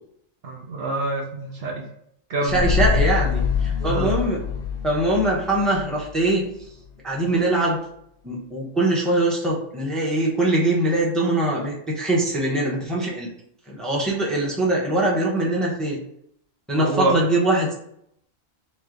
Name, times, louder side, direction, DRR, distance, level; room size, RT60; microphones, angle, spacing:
voice 1, 0.4-1.7 2.3-2.6 3.8-4.1 16.8-17.2, right 2 dB, 65° right, 1 dB, 0.9 m, -26 dB
voice 2, 2.4-4.4 4.8-6.4 7.0-7.8 8.2-13.3 13.7-16.0 16.7-17.7, right 1 dB, ahead, -4 dB, 0.8 m, -22 dB
sound 1, 2.5-7.0 7.3-7.4, left 6 dB, 70° left, 0.9 m, -25 dB
3.3 x 3.2 x 3.8 m, 0.71 s
omnidirectional pair, 1.2 m